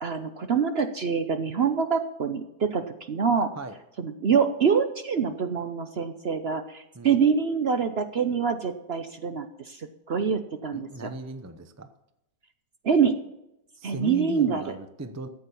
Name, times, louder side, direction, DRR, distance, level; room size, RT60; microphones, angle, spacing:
voice 1, 0.0-3.5 4.0-11.1 12.8-13.2 13.8-14.8, right 6 dB, 50° right, 8 dB, 0.8 m, -25 dB
voice 2, 10.7-11.9 13.8-15.3, right 2 dB, 20° right, 9 dB, 0.5 m, -38 dB
14.0 x 8.3 x 6.9 m, 0.87 s
omnidirectional pair, 1.7 m